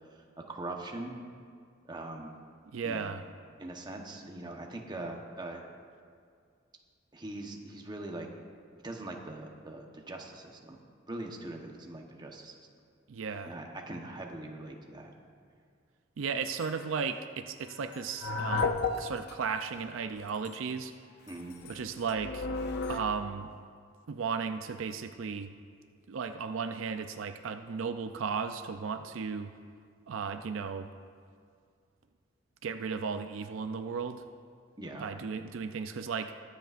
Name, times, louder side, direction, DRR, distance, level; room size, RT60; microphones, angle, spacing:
voice 1, 0.4-1.2 1.9-2.3 2.8-3.2 3.6-5.6 7.1-8.3 8.8-10.8 11.1-12.5 13.4-15.1 21.3-21.6 34.8-35.1, right 2 dB, 20° right, 1 dB, 1.0 m, -41 dB
voice 2, 2.7-3.2 13.1-13.6 16.2-20.9 21.6-22.5 22.9-23.5 24.1-25.5 26.1-29.5 30.1-30.9 32.6-34.2 35.0-36.3, right 5 dB, 70° right, 8 dB, 0.4 m, -35 dB
sound 1, 16.6-16.9 17.9-19.3 19.7-19.8 20.3-20.5 21.3-23.0, left 4 dB, 60° left, 0.6 m, -33 dB
22.0 x 8.0 x 2.5 m, 2.2 s
head